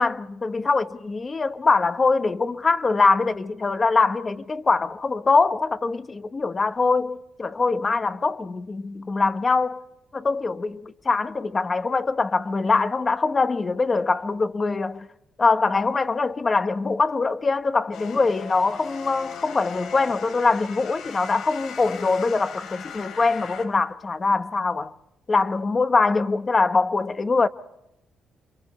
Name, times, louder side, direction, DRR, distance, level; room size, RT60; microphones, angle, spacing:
voice 1, 0.0-9.8 10.1-15.1 15.4-24.9 25.3-27.5, left 4 dB, 25° left, 1.1 m, -23 dB
sound 1, 17.9-23.7, left 6 dB, 70° left, 4.5 m, -39 dB
29.0 x 26.0 x 4.4 m
cardioid pair, 160°, 0 cm